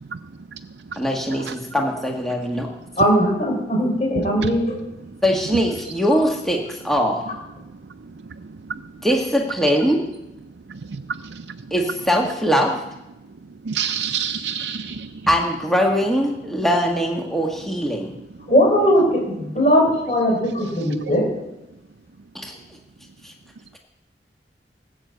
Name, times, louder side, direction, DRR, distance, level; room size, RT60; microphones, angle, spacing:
voice 1, 1.0-2.7 5.2-7.2 9.0-10.0 11.7-12.8 15.3-18.1 22.3-22.6 23.2-23.3, equal, ahead, 0 dB, 1.5 m, -21 dB
voice 2, 3.0-4.8 18.5-21.2, equal, 40° left, -2 dB, 4.6 m, -19 dB
voice 3, 13.7-15.1, right 8 dB, 80° right, 8 dB, 0.5 m, -27 dB
18.5 x 8.1 x 7.9 m, 0.92 s
head